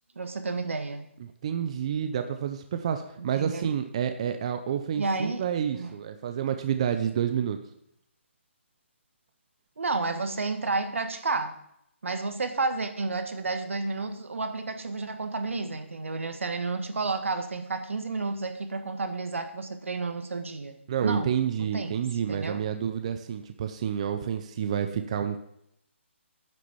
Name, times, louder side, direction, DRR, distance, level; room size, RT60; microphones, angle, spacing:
voice 1, 0.2-1.1 3.2-3.7 5.0-5.4 5.7-5.9 9.8-11.5 12.0-20.8 21.0-21.3 21.7-22.0 22.3-22.6, right 3 dB, 75° right, 8 dB, 1.6 m, -31 dB
voice 2, 1.2-7.6 20.9-25.4, right 8 dB, 30° right, 7 dB, 0.6 m, -29 dB
9.6 x 6.4 x 7.0 m, 0.76 s
hypercardioid pair, 165°, 7 cm